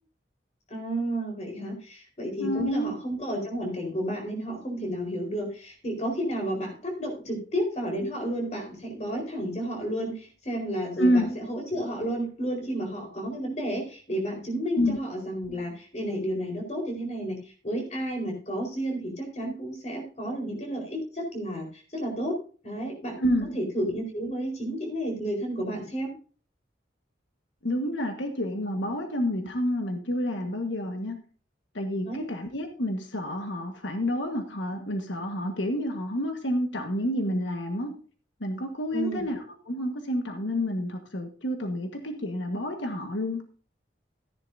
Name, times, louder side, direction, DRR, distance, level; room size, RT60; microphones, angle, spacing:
voice 1, 0.7-22.4 22.6-23.2 23.5-26.1 32.0-32.2 38.9-39.2, right 1 dB, 35° left, 2 dB, 4.5 m, -31 dB
voice 2, 2.4-2.9 11.0-11.3 14.8-15.0 23.2-23.6 27.6-31.2 31.7-38.0 38.4-43.4, equal, 85° left, 5 dB, 1.6 m, -29 dB
15.0 x 10.5 x 2.7 m, 0.38 s
head